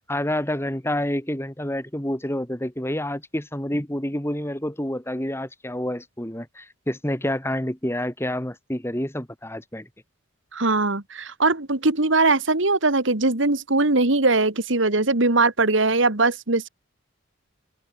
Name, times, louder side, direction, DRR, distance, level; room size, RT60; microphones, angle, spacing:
voice 1, 0.1-9.9, left 1 dB, 10° left, 2.8 m, -28 dB
voice 2, 10.5-16.7, right 3 dB, 65° right, 2.1 m, -21 dB
open air
head